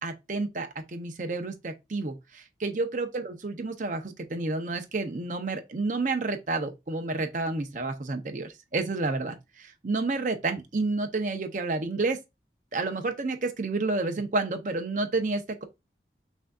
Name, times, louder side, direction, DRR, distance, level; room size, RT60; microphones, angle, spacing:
voice 1, 0.0-12.2 12.7-15.6, right 3 dB, 45° right, 0.6 m, -30 dB
6.0 x 2.6 x 2.3 m
head